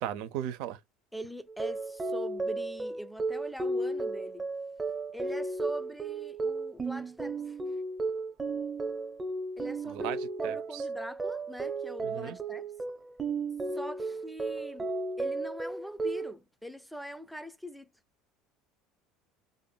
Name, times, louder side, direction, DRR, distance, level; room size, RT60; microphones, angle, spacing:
voice 1, 0.0-0.8 9.9-10.2 10.4-10.5 12.0-12.4, right 11 dB, 70° right, 0.6 m, -36 dB
voice 2, 1.1-4.5 5.1-7.6 9.6-10.1 10.4-12.7 13.7-14.9 15.2-17.9, equal, ahead, 0.5 m, -42 dB
sound 1, 1.5-16.3, right 3 dB, 25° right, 0.9 m, -34 dB
3.5 x 2.5 x 2.2 m
supercardioid pair, 100°, 0 cm